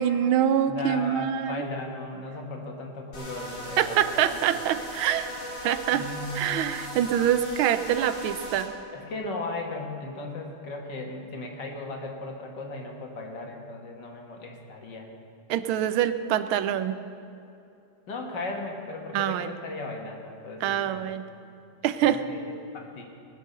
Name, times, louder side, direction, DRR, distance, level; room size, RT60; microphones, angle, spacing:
voice 1, 0.0-1.6 3.8-5.3 5.6-6.0 6.3-8.7 15.5-17.0 19.1-19.5 20.6-21.2 21.8-22.2, right 10 dB, 80° right, 12 dB, 1.5 m, -25 dB
voice 2, 0.7-4.4 5.9-6.5 8.9-15.1 18.1-21.1 22.0-23.0, left 2 dB, 55° left, 2 dB, 2.1 m, -37 dB
sound 1, 3.1-8.7, equal, 90° left, 3.2 m, -38 dB
20.5 x 7.7 x 6.7 m, 2.6 s
omnidirectional pair, 2.3 m